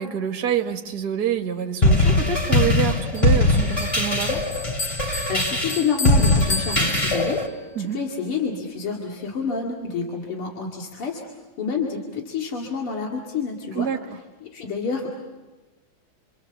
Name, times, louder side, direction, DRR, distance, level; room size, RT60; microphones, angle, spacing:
voice 1, 0.0-4.4 7.8-8.0 13.7-14.0, right 8 dB, 50° right, 4 dB, 1.8 m, -26 dB
sound 1, 1.8-7.5, left 2 dB, 15° left, 2.6 m, -20 dB
Bell, 3.1-7.7, left 3 dB, 50° left, 1.2 m, -33 dB
voice 2, 5.3-11.2 11.6-13.9 14.4-15.1, left 5 dB, 85° left, -1 dB, 3.2 m, -28 dB
27.5 x 26.0 x 7.0 m, 1.2 s
omnidirectional pair, 2.4 m